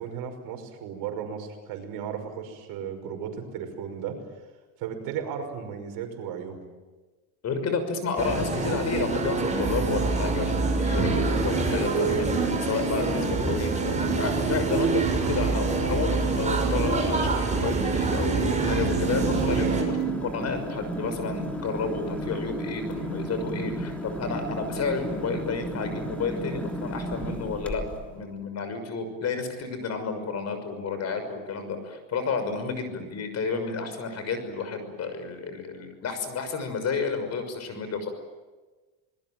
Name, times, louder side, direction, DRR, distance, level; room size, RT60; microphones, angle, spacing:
voice 1, 0.0-4.2 4.8-6.6, right 8 dB, 65° right, 5 dB, 5.8 m, -35 dB
voice 2, 7.4-27.8 28.1-38.1, left 4 dB, 40° left, 8 dB, 6.3 m, -31 dB
sound 1, 8.2-19.8, right 2 dB, 20° right, 6.6 m, -26 dB
sound 2, 9.1-20.3, right 12 dB, 35° right, 1.3 m, -32 dB
sound 3, 18.9-28.1, equal, 5° left, 3.4 m, -34 dB
26.5 x 21.0 x 9.1 m, 1.3 s
cardioid pair, 120°, 38 cm